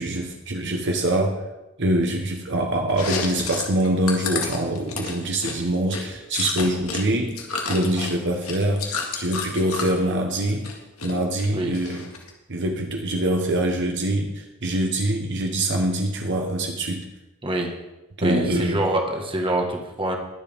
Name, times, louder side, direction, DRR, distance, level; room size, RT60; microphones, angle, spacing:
voice 1, 0.0-1.4 1.8-7.4 7.7-10.7 11.0-12.1 12.5-17.0 18.2-18.8, right 1 dB, 55° right, 2 dB, 1.1 m, -24 dB
Chewing mastication, 2.9-7.0 7.3-10.0 10.4-11.1 11.4-12.3, left 5 dB, 80° left, 1.9 m, -30 dB
voice 2, 18.2-20.2, right 1 dB, 25° right, 2 dB, 1.6 m, -25 dB
21.0 x 7.5 x 3.6 m, 1.0 s
head